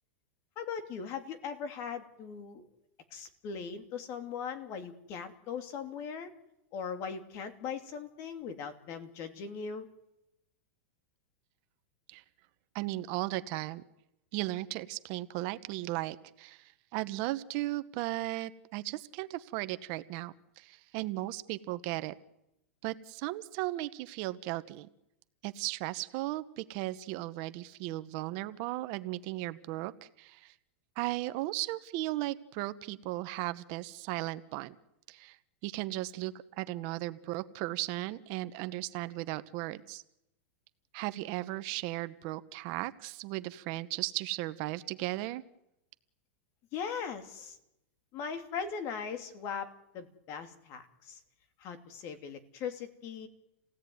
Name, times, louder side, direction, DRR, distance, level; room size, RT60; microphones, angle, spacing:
voice 1, 0.6-2.6 3.1-6.3 6.7-9.9 46.7-47.6 48.1-49.7 49.9-51.2 51.6-53.3, left 6 dB, 40° left, 8 dB, 2.9 m, -39 dB
voice 2, 12.7-13.8 14.3-22.1 22.8-24.9 25.4-30.5 31.0-34.7 35.1-35.4 35.6-40.0 40.9-45.4, right 17 dB, 50° right, 13 dB, 1.1 m, -36 dB
29.0 x 17.0 x 9.5 m, 0.89 s
supercardioid pair, 140°, 7 cm